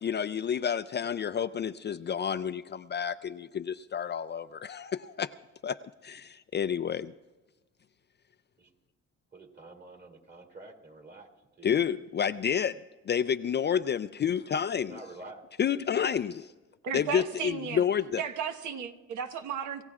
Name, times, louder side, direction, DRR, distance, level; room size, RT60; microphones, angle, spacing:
voice 1, 0.0-5.3 5.6-7.1 11.6-12.8 13.0-15.0 15.6-16.5 16.9-18.2, left 8 dB, 35° left, 12 dB, 0.4 m, -30 dB
voice 2, 9.3-11.3 11.6-11.8 14.8-15.4, right 2 dB, 35° right, 2 dB, 2.5 m, -48 dB
voice 3, 16.8-17.8 18.2-19.8, right 7 dB, 85° right, 6 dB, 1.3 m, -34 dB
26.5 x 15.5 x 2.4 m, 1.2 s
cardioid pair, 80°, 29 cm